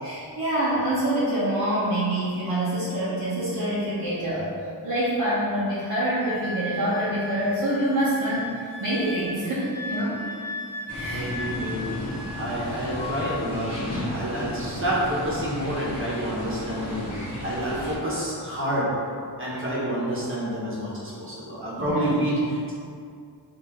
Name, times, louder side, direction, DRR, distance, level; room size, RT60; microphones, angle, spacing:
voice 1, 0.0-4.5 4.8-10.2 10.9-11.3 17.1-17.4 19.5-19.6 21.8-22.0, right 1 dB, 45° right, -11 dB, 0.9 m, -26 dB
Wind instrument woodwind instrument, 6.2-12.6 12.9-13.5, left 2 dB, 65° left, 1.2 m, -37 dB
sound 1, 10.9-18.0, equal, 35° left, 1.2 m, -34 dB
voice 2, 11.0-12.0 12.3-17.1 17.4-18.9 19.4-22.7, equal, 30° right, -7 dB, 1.2 m, -28 dB
4.3 x 2.8 x 3.7 m, 2.3 s
wide cardioid pair, 135°, 42 cm